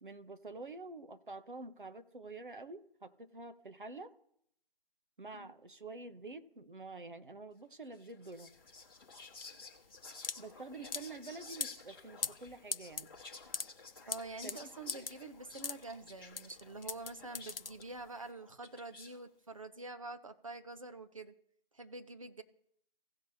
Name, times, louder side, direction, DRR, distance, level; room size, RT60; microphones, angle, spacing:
voice 1, 0.0-4.1 5.2-8.5 10.4-13.1 14.4-15.0, right 3 dB, 60° right, 1.1 m, -48 dB
Whispering, 7.9-19.2, left 4 dB, 25° left, 1.4 m, -53 dB
sound 1, 8.3-18.3, left 5 dB, 70° left, 0.6 m, -42 dB
voice 2, 14.1-21.3 21.7-22.4, right 3 dB, 35° right, 0.8 m, -47 dB
17.0 x 6.1 x 2.8 m
figure-of-eight pair, 160°, 29 cm